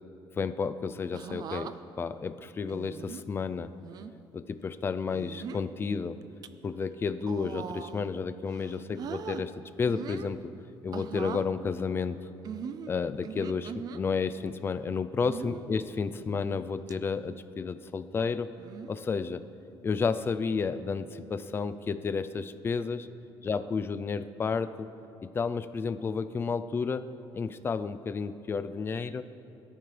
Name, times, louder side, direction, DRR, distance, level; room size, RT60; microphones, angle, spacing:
voice 1, 0.4-3.7 4.3-6.2 6.6-9.5 9.8-10.5 10.8-12.2 12.9-18.5 18.9-19.4 19.8-23.1 23.4-24.9 25.2-27.1 27.3-29.2, left 5 dB, 25° left, 11 dB, 0.5 m, -31 dB
sound 1, 1.1-1.7 2.7-3.2 3.8-4.1 5.1-5.7 6.2-6.5 7.2-8.1 8.5-9.4 9.9-10.4 10.9-11.5 12.4-14.0 15.2-15.7 16.3-16.6 16.9-17.0 18.6-19.0 20.0-20.3, right 7 dB, 50° right, 0.5 m, -40 dB
22.5 x 13.0 x 3.4 m, 2.9 s
cardioid pair, 145°, 9 cm